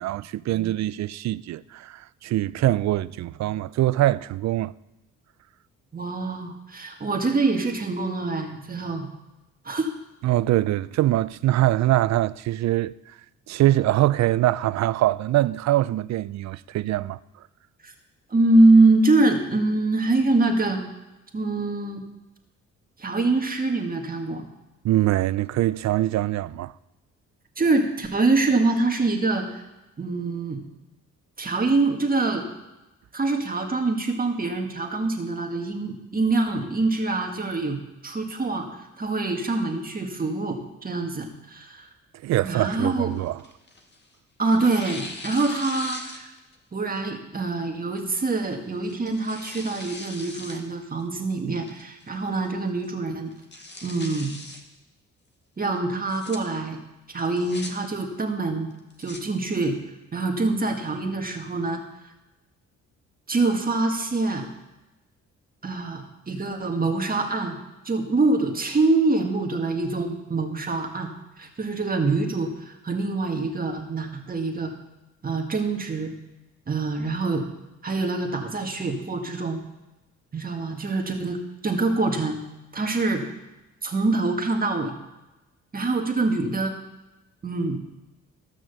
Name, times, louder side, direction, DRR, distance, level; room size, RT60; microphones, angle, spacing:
voice 1, 0.0-4.7 10.2-12.9 13.5-17.2 24.8-26.7 42.2-43.4, right 15 dB, 65° right, 0.5 m, -23 dB
voice 2, 5.9-9.0 9.6-9.9 17.8-17.9 18.3-20.8 21.3-22.0 23.0-24.4 27.6-29.6 30.0-30.6 31.4-32.5 33.1-41.9 42.4-43.1 44.4-46.3 46.7-53.3 53.8-54.3 55.6-56.8 57.1-58.7 59.0-59.8 60.1-61.8 63.3-64.5 65.6-67.6 67.8-74.7 75.2-76.1 76.7-77.5 77.8-79.6 80.3-82.4 82.7-83.2 83.8-84.9 85.7-86.7 87.4-87.8, right 3 dB, 30° right, 1.7 m, -24 dB
Tearing, 42.7-44.0 44.5-46.6 47.0-47.1 48.0-48.3 48.8-50.6 51.0-51.1 51.7-52.1 52.4-52.5 52.8-52.9 53.3-54.6 55.9-56.4 57.2-57.7 58.7-59.2, left 2 dB, 35° left, 1.9 m, -40 dB
14.5 x 6.1 x 6.8 m
cardioid pair, 90°, 30 cm